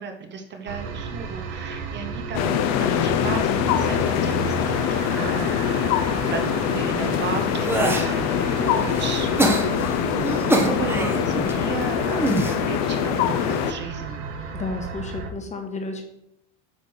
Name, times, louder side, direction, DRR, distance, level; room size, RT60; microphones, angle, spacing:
voice 1, 0.0-5.5 6.2-10.0 10.3-14.3, right 5 dB, 30° right, 4 dB, 1.0 m, -34 dB
sound 1, 0.7-15.3, right 5 dB, 75° right, 1.5 m, -33 dB
sound 2, 2.3-13.7, left 10 dB, 50° left, 0.7 m, -24 dB
sound 3, 7.0-8.1 8.6-11.5 12.1-12.5 13.4-13.7, right 2 dB, 5° right, 1.0 m, -25 dB
voice 2, 14.5-16.0, left 3 dB, 20° left, 4 dB, 1.2 m, -32 dB
9.4 x 3.4 x 6.2 m, 0.79 s
supercardioid pair, 135°, 35 cm